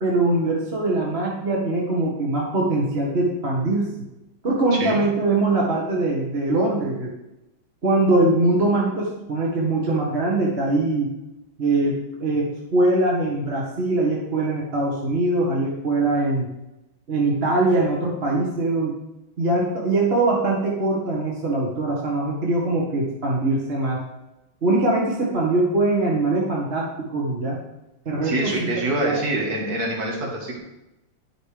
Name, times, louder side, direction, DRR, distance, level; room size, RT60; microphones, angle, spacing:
voice 1, 0.0-3.9 4.4-7.1 7.8-11.1 11.6-16.5 17.1-18.9 19.4-24.0 24.6-27.6 28.1-28.7 29.0-29.2, right 2 dB, 30° right, -3 dB, 2.0 m, -22 dB
voice 2, 28.2-30.6, right 2 dB, 45° right, 0 dB, 2.4 m, -25 dB
10.5 x 6.4 x 5.1 m, 0.92 s
omnidirectional pair, 2.3 m